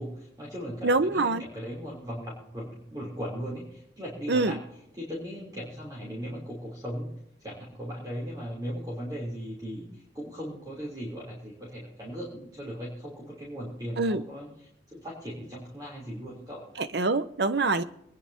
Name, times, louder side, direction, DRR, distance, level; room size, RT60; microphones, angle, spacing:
voice 1, 0.0-4.6 4.9-7.1 7.4-16.7, equal, 20° right, 3.2 m, -38 dB
voice 2, 0.8-1.4 4.3-4.6 14.0-14.2 16.8-17.8, right 3 dB, 75° right, 0.8 m, -25 dB
24.5 x 10.0 x 2.8 m
head